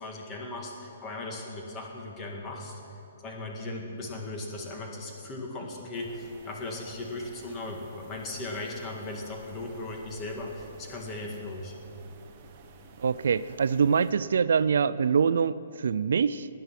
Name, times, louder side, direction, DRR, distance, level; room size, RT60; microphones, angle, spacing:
voice 1, 0.0-2.8 3.2-11.7, left 2 dB, 20° left, 1 dB, 1.8 m, -37 dB
sound 1, 5.9-14.1, right 5 dB, 30° right, 1.2 m, -52 dB
voice 2, 13.0-16.5, right 6 dB, 70° right, 16 dB, 0.4 m, -24 dB
18.5 x 9.5 x 5.9 m, 3.0 s
hypercardioid pair, 165°, 0 cm